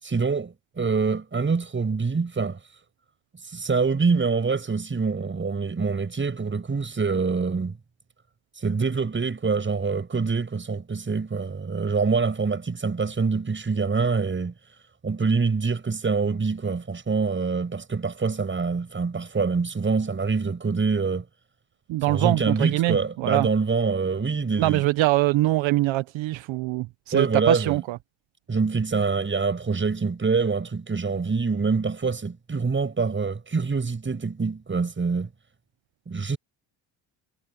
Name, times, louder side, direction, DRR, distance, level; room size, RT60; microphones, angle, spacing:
voice 1, 0.0-2.6 3.5-7.7 8.6-14.5 15.0-21.2 22.1-24.8 27.1-27.8 28.5-35.3 36.1-36.4, right 4 dB, 25° right, 7.8 m, -25 dB
voice 2, 21.9-23.5 24.6-28.0, right 17 dB, 70° right, 1.1 m, -23 dB
cardioid pair, 115°, 48 cm